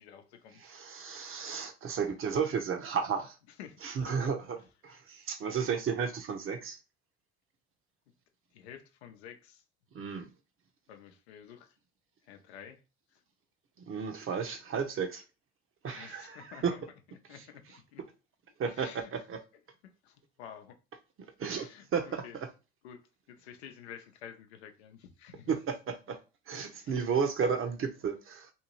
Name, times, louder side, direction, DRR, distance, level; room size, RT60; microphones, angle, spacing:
voice 1, 0.0-0.6 3.6-4.3 8.5-9.6 10.9-11.7 12.3-12.8 13.1-13.2 15.8-16.8 17.3-17.6 17.9-18.0 18.7-19.1 20.0-20.8 21.4-22.4 22.8-25.5 26.7-27.0, left 8 dB, 90° left, 0.6 m, -50 dB
voice 2, 0.6-3.3 3.8-4.6 4.8-6.8 9.9-10.3 13.9-15.2 15.8-16.7 18.6-19.4 21.4-22.2 25.5-26.2 26.5-28.5, right 6 dB, 40° right, 0.8 m, -33 dB
2.7 x 2.6 x 3.0 m
hypercardioid pair, 65°, 32 cm